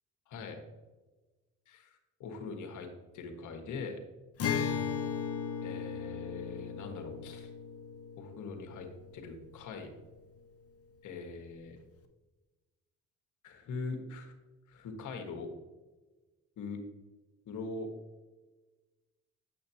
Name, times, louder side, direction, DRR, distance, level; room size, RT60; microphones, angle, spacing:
voice 1, 0.3-0.6 1.7-2.9 3.1-4.0 5.6-7.5 8.2-8.9 9.1-9.9 11.0-11.8 13.4-14.3 14.7-15.5 16.6-16.8 17.5-17.9, left 4 dB, 75° left, 4 dB, 1.5 m, -42 dB
Acoustic guitar, 4.4-9.9, left 7 dB, 50° left, 1.0 m, -37 dB
8.5 x 7.1 x 2.8 m, 1.2 s
cardioid pair, 90°, 30 cm